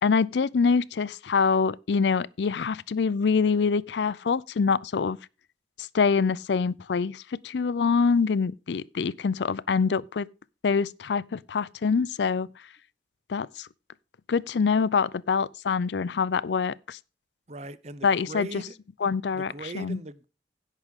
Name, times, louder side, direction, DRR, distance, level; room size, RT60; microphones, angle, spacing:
voice 1, 0.0-5.2 5.8-10.3 10.6-12.5 13.3-13.7 14.3-17.0 18.0-18.5 19.0-20.0, left 5 dB, 80° left, 0.5 m, -25 dB
voice 2, 17.5-18.7 19.3-20.2, right 2 dB, 40° right, 0.7 m, -39 dB
16.0 x 6.3 x 3.6 m
head